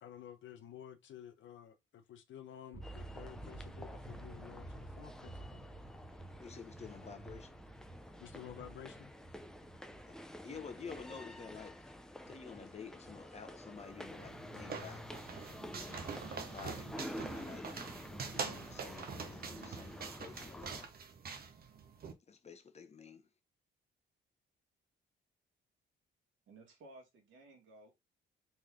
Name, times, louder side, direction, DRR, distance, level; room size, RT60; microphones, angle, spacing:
voice 1, 0.0-5.6 8.2-9.1, left 10 dB, 70° left, 1.0 m, -52 dB
sound 1, 2.7-14.2, right 2 dB, 20° right, 1.6 m, -53 dB
sound 2, 2.8-20.8, left 1 dB, 5° left, 0.6 m, -50 dB
voice 2, 6.4-7.6 10.1-11.9 12.3-15.4 15.8-16.0 16.4-17.7 18.1-20.9 22.3-23.3, left 6 dB, 35° left, 0.9 m, -51 dB
sound 3, 14.0-22.1, right 5 dB, 50° right, 1.0 m, -45 dB
voice 3, 26.5-27.9, right 2 dB, 75° right, 2.1 m, -57 dB
4.2 x 3.3 x 3.7 m
cardioid pair, 90°, 20 cm